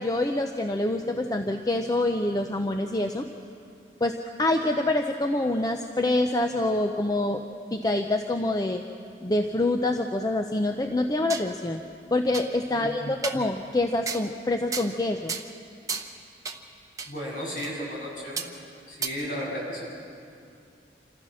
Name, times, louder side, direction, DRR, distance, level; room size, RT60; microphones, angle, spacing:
voice 1, 0.0-3.3 4.0-7.4 7.7-8.8 9.2-11.8 12.1-15.3, left 2 dB, 20° left, 5 dB, 0.6 m, -26 dB
sound 1, 10.9-11.5 11.9-12.0 12.3-12.5 13.2-13.4 14.0-14.3 14.7-15.0 15.3-15.5 15.9-16.1 16.4-16.6 17.0-17.1 17.6-17.7 18.4-18.5 19.0-19.1, right 5 dB, 20° right, 0.9 m, -33 dB
voice 2, 12.7-13.3 17.1-18.4 18.9-19.8, equal, 50° left, -4 dB, 7.4 m, -34 dB
28.0 x 15.0 x 6.3 m, 2.5 s
head